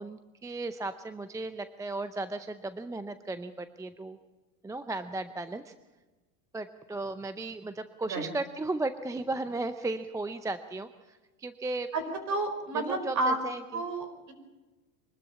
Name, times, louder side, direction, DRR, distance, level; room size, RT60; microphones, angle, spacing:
voice 1, 0.0-4.2 4.6-5.7 6.5-11.9 12.7-13.8, right 2 dB, 5° right, 11 dB, 0.5 m, -35 dB
voice 2, 12.3-13.3 13.7-14.3, right 2 dB, 35° right, 9 dB, 4.8 m, -30 dB
24.5 x 13.0 x 8.6 m, 1.2 s
supercardioid pair, 125°, 47 cm